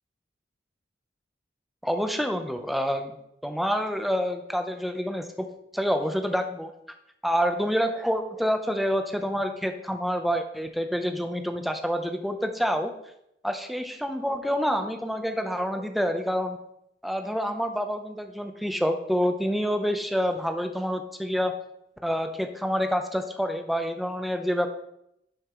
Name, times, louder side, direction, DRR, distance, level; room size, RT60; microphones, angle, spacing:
voice 1, 1.8-3.1 3.4-5.5 5.7-6.7 7.2-12.9 13.4-16.6 17.0-21.5 22.0-24.7, equal, ahead, 5 dB, 0.8 m, -27 dB
12.0 x 7.1 x 3.1 m, 0.77 s
head